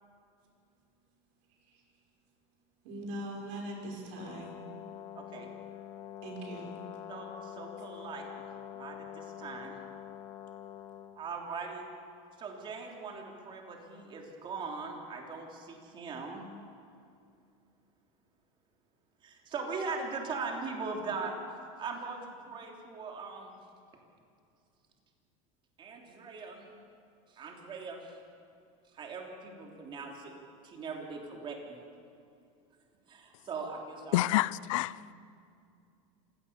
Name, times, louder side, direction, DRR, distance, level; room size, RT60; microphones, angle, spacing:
voice 1, 2.8-4.5 6.2-6.7, right 1 dB, 65° right, 6.1 m, -40 dB
Brass instrument, 4.1-11.2, left 11 dB, 60° left, 1.7 m, -45 dB
voice 2, 5.2-5.5 7.1-8.3 8.7-9.7 11.2-11.9 12.4-16.5 19.2-21.4 21.8-23.6 25.8-26.7 27.3-28.2 28.9-30.3 30.6-31.8 33.1-34.3, right 4 dB, 30° right, 3.3 m, -40 dB
voice 3, 34.1-35.1, left 16 dB, 85° left, 0.5 m, -28 dB
26.5 x 17.0 x 7.0 m
supercardioid pair, 140°, 16 cm